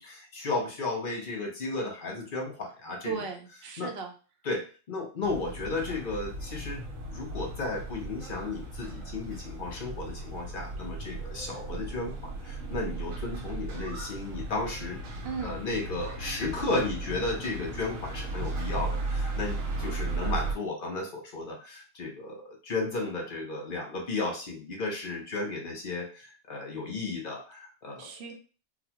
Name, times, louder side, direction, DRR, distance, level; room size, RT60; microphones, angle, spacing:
voice 1, 0.0-3.2 3.8-3.9 4.4-6.8 7.1-15.0 15.4-28.1, left 3 dB, 50° left, 0 dB, 0.8 m, -34 dB
voice 2, 3.0-4.1 15.2-15.6 28.0-28.3, right 5 dB, 60° right, 4 dB, 0.8 m, -36 dB
sound 1, 5.2-20.5, right 2 dB, 80° right, 1.2 m, -36 dB
4.0 x 2.1 x 2.8 m, 0.36 s
omnidirectional pair, 1.4 m